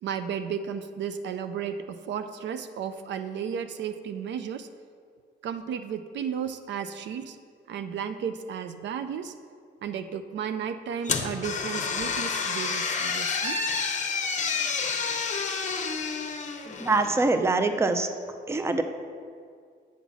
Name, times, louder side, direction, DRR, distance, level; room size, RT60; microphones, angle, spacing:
voice 1, 0.0-4.7 5.4-7.4 7.7-9.3 9.8-13.6, right 7 dB, 65° right, 9 dB, 0.4 m, -33 dB
sound 1, 11.0-17.2, left 5 dB, 40° left, 0.7 m, -29 dB
voice 2, 16.7-18.1 18.5-18.8, right 3 dB, 15° right, 8 dB, 0.5 m, -24 dB
8.3 x 3.9 x 6.0 m, 2.1 s
cardioid pair, 90°, 20 cm